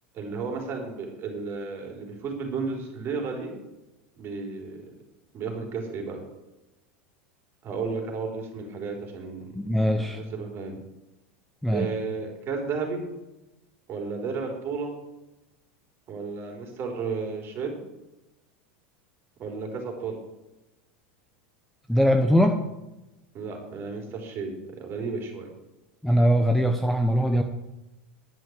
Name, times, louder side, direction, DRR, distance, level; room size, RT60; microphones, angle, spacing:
voice 1, 0.1-3.6 4.2-4.9 5.3-6.2 7.6-9.4 10.0-10.8 11.7-13.1 13.9-14.9 16.1-17.8 19.4-20.2 23.3-25.5, right 4 dB, 35° right, 2 dB, 3.8 m, -33 dB
voice 2, 9.5-10.2 11.6-11.9 21.9-22.6 26.0-27.4, equal, 5° left, 6 dB, 0.8 m, -21 dB
11.0 x 6.4 x 8.1 m, 0.97 s
supercardioid pair, 125°, 6 cm